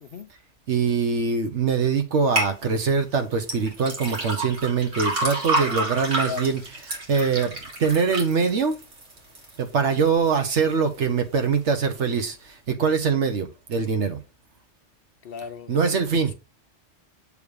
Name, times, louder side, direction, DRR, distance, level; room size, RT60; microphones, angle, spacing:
voice 1, 0.7-6.6 6.9-8.8 9.6-14.2 15.7-16.3, right 5 dB, 70° right, 1.3 m, -23 dB
sound 1, 2.4-2.5 3.4-9.5 10.0-10.5 11.0-11.1, right 2 dB, 90° right, 2.3 m, -28 dB
voice 2, 15.2-16.1, left 6 dB, 60° left, 0.8 m, -36 dB
7.3 x 3.3 x 4.8 m
omnidirectional pair, 1.2 m